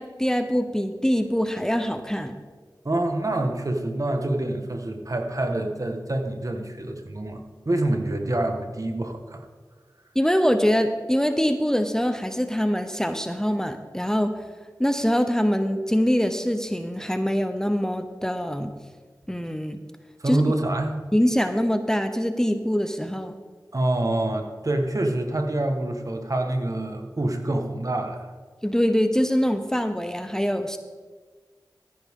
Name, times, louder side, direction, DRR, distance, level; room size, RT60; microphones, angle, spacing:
voice 1, 0.0-2.4 10.1-14.3 14.8-18.7 19.3-19.8 20.3-20.5 21.1-23.4 28.6-30.8, equal, 5° left, 8 dB, 0.7 m, -24 dB
voice 2, 2.8-7.4 7.6-9.4 20.2-20.9 23.7-28.3, right 1 dB, 50° right, 4 dB, 1.4 m, -26 dB
14.0 x 9.7 x 3.7 m, 1.5 s
cardioid pair, 40°, 8 cm